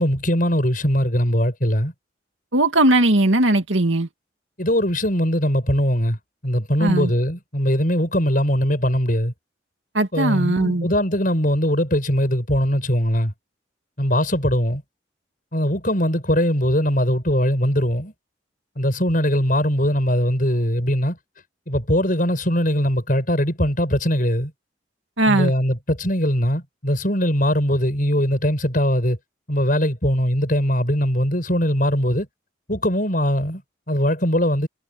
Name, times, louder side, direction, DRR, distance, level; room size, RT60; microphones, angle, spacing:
voice 1, 0.0-1.9 4.6-6.2 6.4-9.3 10.1-13.3 14.0-14.8 15.5-18.1 18.8-21.2 21.7-24.5 25.3-29.2 29.5-32.3 32.7-33.6 33.9-34.7, equal, 45° left, 7.8 m, -21 dB
voice 2, 2.5-4.1 6.8-7.1 9.9-10.9 25.2-25.5, right 1 dB, 80° right, 2.3 m, -18 dB
head